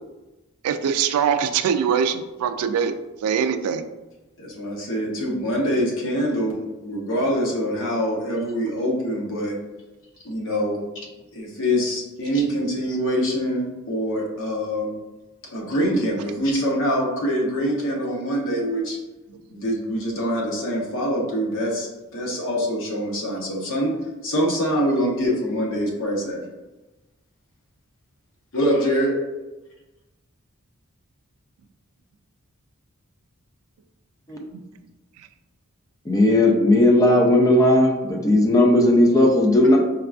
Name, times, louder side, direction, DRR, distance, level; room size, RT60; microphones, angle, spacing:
voice 1, 0.6-2.9 3.2-3.8 34.5-34.6, right 7 dB, 75° right, 13 dB, 0.3 m, -22 dB
voice 2, 4.4-9.6 10.2-11.1 11.3-14.9 15.5-19.0 19.5-23.9 24.2-26.4 28.5-29.1 39.6-39.7, equal, 65° left, -2 dB, 0.9 m, -24 dB
voice 3, 36.1-39.8, left 1 dB, 15° left, 0 dB, 0.4 m, -16 dB
4.6 x 2.3 x 2.4 m, 1.1 s
head